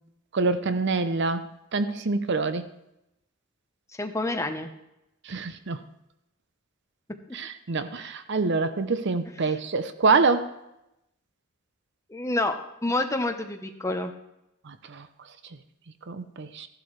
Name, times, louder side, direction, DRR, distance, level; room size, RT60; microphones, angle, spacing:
voice 1, 0.3-2.7 5.3-5.8 7.3-10.5 14.7-15.1 16.1-16.7, right 4 dB, 60° right, 11 dB, 0.7 m, -26 dB
voice 2, 4.0-4.7 12.1-14.1, left 2 dB, 15° left, 6 dB, 0.9 m, -28 dB
14.5 x 11.0 x 3.2 m, 0.86 s
head